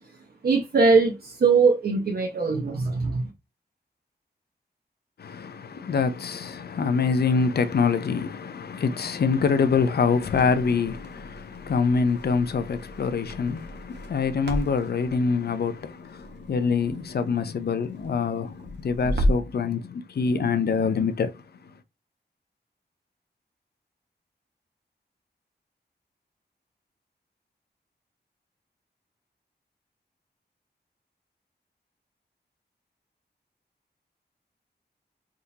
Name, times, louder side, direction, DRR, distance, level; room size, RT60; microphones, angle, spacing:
voice 1, 0.4-3.3, right 4 dB, 60° right, 0.9 m, -21 dB
voice 2, 5.2-21.3, left 5 dB, 65° left, 0.6 m, -25 dB
Crackle, 10.3-19.6, equal, 80° right, 1.1 m, -34 dB
4.2 x 3.7 x 2.8 m
wide cardioid pair, 135°, 18 cm